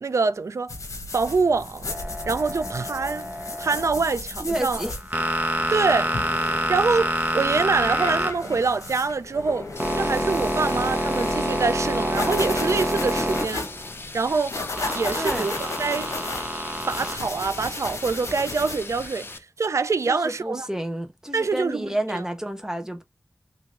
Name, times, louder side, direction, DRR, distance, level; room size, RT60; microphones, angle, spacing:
voice 1, 0.0-0.7 1.1-1.9 2.3-3.3 3.6-4.8 5.7-6.1 6.4-9.7 9.9-13.7 14.1-14.5 14.9-16.1 16.9-19.3 19.6-20.7 21.3-22.2, right 4 dB, 65° right, 0.3 m, -25 dB
sound 1, 0.7-19.1, left 3 dB, 70° left, 0.9 m, -35 dB
sound 2, 1.9-3.9 4.7-9.0 9.3-13.9 14.8-17.2, equal, 30° right, 1.0 m, -27 dB
voice 2, 4.4-5.0 15.1-15.5 20.1-23.0, right 1 dB, 10° right, 0.6 m, -30 dB
sound 3, 9.8-19.4, left 3 dB, 45° left, 0.6 m, -40 dB
3.3 x 3.1 x 2.4 m
wide cardioid pair, 65°, 6 cm